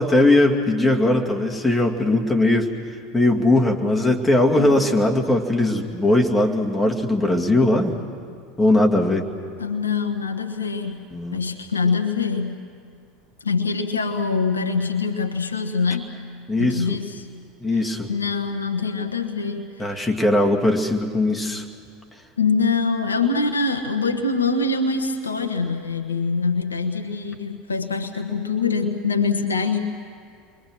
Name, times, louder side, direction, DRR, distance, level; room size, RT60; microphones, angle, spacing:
voice 1, 0.0-2.7 3.1-8.0 8.6-9.3 11.1-11.4 16.5-17.0 17.6-18.1 19.8-21.6, left 1 dB, 10° left, 1 dB, 2.4 m, -19 dB
voice 2, 9.6-11.0 11.3-12.6 13.4-16.2 16.6-17.3 18.1-20.1 22.4-30.0, left 4 dB, 80° left, 6 dB, 1.3 m, -24 dB
29.5 x 23.0 x 6.4 m, 2.3 s
figure-of-eight pair, 75°, 0 cm